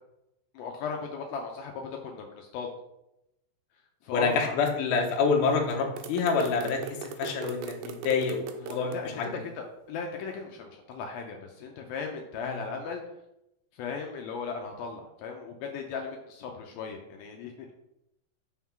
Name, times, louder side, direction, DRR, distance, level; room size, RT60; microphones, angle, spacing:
voice 1, 0.5-2.7 4.0-4.6 8.9-9.1 9.6-13.0 13.7-17.7, left 5 dB, 90° left, 2 dB, 2.1 m, -37 dB
voice 2, 4.1-9.4 12.4-12.6, left 5 dB, 75° left, 1 dB, 1.8 m, -27 dB
sound 1, 6.0-9.0, right 7 dB, 85° right, 2.7 m, -40 dB
6.3 x 3.7 x 5.8 m, 0.87 s
omnidirectional pair, 4.9 m